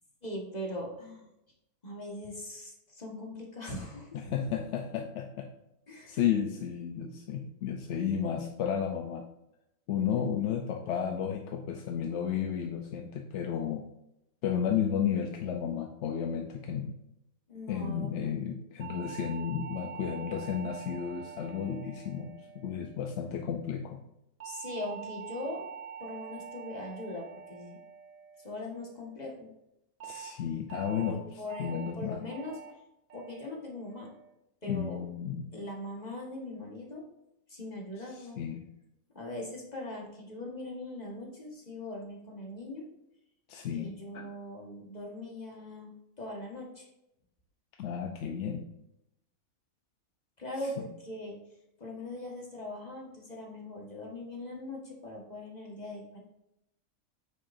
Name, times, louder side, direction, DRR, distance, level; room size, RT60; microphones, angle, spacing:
voice 1, 0.2-1.3 1.8-4.2 5.9-6.2 17.5-18.3 24.4-25.7 26.0-27.8 28.4-29.5 31.1-32.6 33.1-34.1 34.6-35.0 35.5-37.0 37.5-38.4 39.2-42.8 43.7-46.9 50.4-51.4 51.8-56.2, left 1 dB, 30° left, -1 dB, 1.6 m, -41 dB
voice 2, 4.1-5.5 6.1-9.2 9.9-13.8 14.4-16.9 17.7-24.0 30.0-31.2 31.6-32.2 34.7-35.5 38.1-38.6 43.5-44.2 47.8-48.7, left 8 dB, 60° left, 3 dB, 0.9 m, -33 dB
sound 1, 18.8-23.3 24.4-28.9 30.0-30.3 30.7-31.1 31.5-31.9 32.3-32.7 33.1-33.5 33.9-34.3, right 8 dB, 65° right, 1.8 m, -45 dB
9.0 x 6.7 x 2.6 m, 0.85 s
omnidirectional pair, 1.5 m